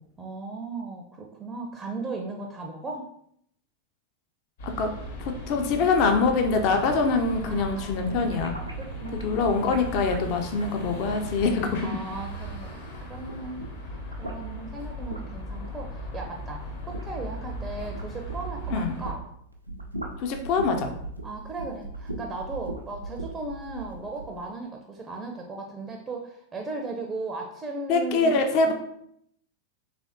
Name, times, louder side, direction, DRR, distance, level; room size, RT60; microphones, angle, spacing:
voice 1, 0.2-3.1 7.5-8.4 8.8-9.7 11.8-19.2 21.2-28.4 28.6-28.7, right 3 dB, 15° right, 2 dB, 0.4 m, -37 dB
sound 1, 4.6-19.1, equal, 60° left, 1.1 m, -38 dB
voice 2, 5.2-8.5 9.2-11.8 18.7-18.9 20.2-20.9 27.9-28.7, left 4 dB, 45° left, 5 dB, 0.4 m, -24 dB
sound 2, 6.7-12.9 13.2-19.2 19.5-24.3, right 2 dB, 85° right, 0.4 m, -40 dB
3.3 x 3.3 x 2.6 m, 0.71 s
figure-of-eight pair, 90°, 0 cm